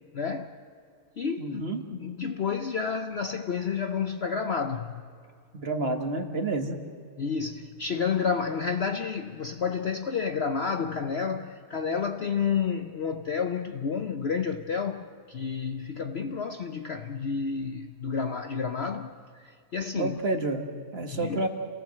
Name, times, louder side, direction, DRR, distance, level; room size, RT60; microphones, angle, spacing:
voice 1, 0.1-0.6 1.2-5.0 7.2-20.2 21.1-21.5, left 6 dB, 55° left, 0.8 m, -30 dB
voice 2, 1.4-1.9 5.5-6.8 20.0-21.5, right 2 dB, 40° right, 1.7 m, -29 dB
28.0 x 18.0 x 7.7 m
omnidirectional pair, 1.7 m